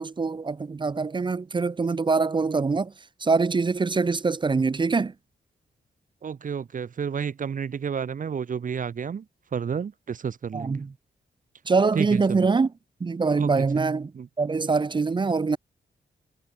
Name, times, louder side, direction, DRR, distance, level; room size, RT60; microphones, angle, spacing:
voice 1, 0.0-2.9 3.2-5.1 10.5-10.9 11.7-12.7 13.0-14.1 14.4-15.6, right 4 dB, 25° right, 0.6 m, -24 dB
voice 2, 6.2-9.2 9.5-10.9 11.9-12.5 13.4-13.5 14.1-14.3, right 7 dB, 45° right, 1.1 m, -31 dB
wide cardioid pair, 145°, 18 cm